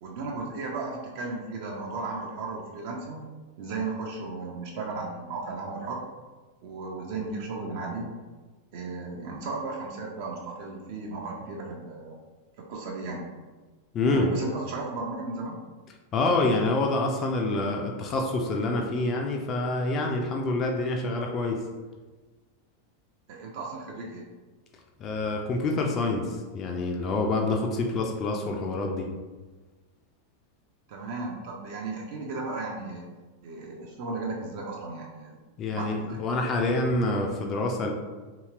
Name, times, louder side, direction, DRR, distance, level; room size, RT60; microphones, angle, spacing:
voice 1, 0.0-3.2 3.6-6.0 6.6-8.2 8.7-12.2 12.6-13.2 14.1-15.6 23.3-24.3 30.9-33.1 33.4-35.4 35.7-36.3, right 3 dB, 50° right, -1 dB, 0.4 m, -35 dB
voice 2, 13.9-14.3 16.1-21.6 25.0-29.1 35.6-37.9, left 2 dB, 30° left, 1 dB, 0.3 m, -27 dB
2.9 x 2.8 x 2.4 m, 1.3 s
figure-of-eight pair, 90°, 0 cm